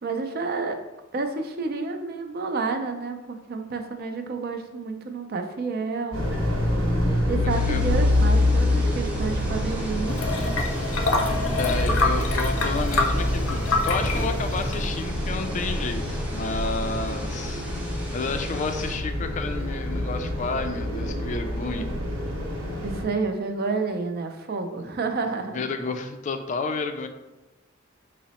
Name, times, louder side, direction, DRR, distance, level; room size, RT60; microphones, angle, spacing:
voice 1, 0.0-0.8 1.1-6.3 7.3-10.2 22.8-25.6, right 4 dB, 50° right, 6 dB, 0.5 m, -29 dB
sound 1, 6.1-23.0, left 1 dB, 90° right, 1.0 m, -26 dB
voice 2, 7.4-7.8 11.6-17.6 18.1-21.9 24.8-24.9 25.5-27.1, left 3 dB, 35° left, 7 dB, 0.3 m, -31 dB
sound 2, 7.5-19.0, right 1 dB, 5° right, 0.6 m, -40 dB
sound 3, 10.1-15.1, left 3 dB, 85° left, 0.6 m, -26 dB
4.9 x 2.0 x 4.1 m, 1.0 s
head